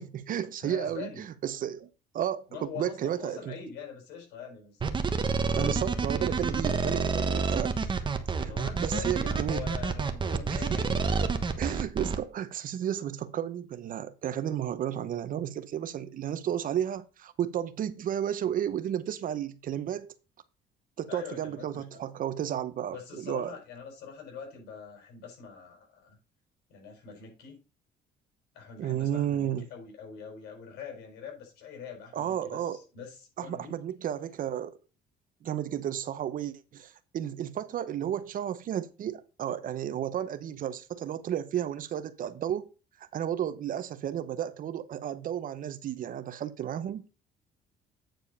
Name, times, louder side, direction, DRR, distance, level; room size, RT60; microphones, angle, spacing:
voice 1, 0.0-1.9 2.1-3.5 5.6-8.0 8.4-9.7 10.5-10.8 11.2-11.3 11.6-20.1 21.0-23.5 28.8-29.7 32.1-32.8 33.4-34.8 35.4-42.7 43.0-47.1, right 10 dB, 55° right, 0.8 m, -33 dB
voice 2, 0.6-1.3 2.5-5.2 5.5-6.0 8.4-11.4 21.1-22.1 22.9-26.2 26.7-27.6 28.5-33.8, left 6 dB, 80° left, 5.4 m, -44 dB
sound 1, 4.8-12.2, right 5 dB, 30° right, 1.2 m, -28 dB
9.2 x 4.6 x 5.4 m
cardioid pair, 110°, 17 cm